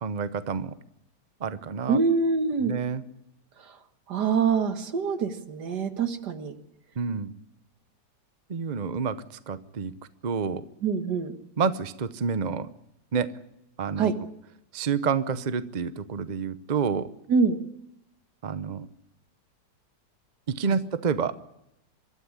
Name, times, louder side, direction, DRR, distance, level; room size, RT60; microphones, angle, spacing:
voice 1, 0.0-0.7 1.4-2.0 2.6-3.0 7.0-7.3 8.5-9.9 10.2-10.6 11.6-12.7 13.1-13.3 13.8-14.1 14.7-17.1 18.4-18.9 20.5-21.4, right 6 dB, 40° right, 13 dB, 0.6 m, -28 dB
voice 2, 1.9-2.7 4.1-6.5 10.8-11.3 14.0-14.1 17.3-17.6, right 5 dB, 70° right, 9 dB, 2.0 m, -25 dB
24.5 x 13.5 x 9.9 m, 0.84 s
omnidirectional pair, 1.8 m